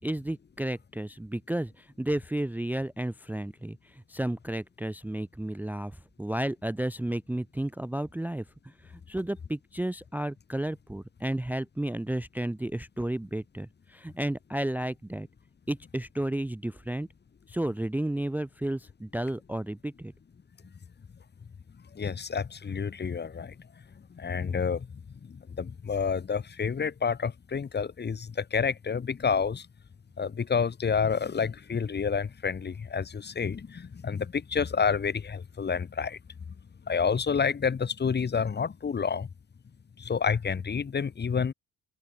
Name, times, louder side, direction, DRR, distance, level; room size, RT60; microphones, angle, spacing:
voice 1, 0.0-8.4 9.1-15.3 15.7-17.1 17.5-20.1, right 1 dB, 5° right, 0.7 m, -32 dB
voice 2, 21.9-23.6 24.1-24.9 25.2-29.7 30.2-36.2 36.9-39.3 40.0-41.5, left 6 dB, 25° left, 1.8 m, -29 dB
cardioid pair, 170°, 39 cm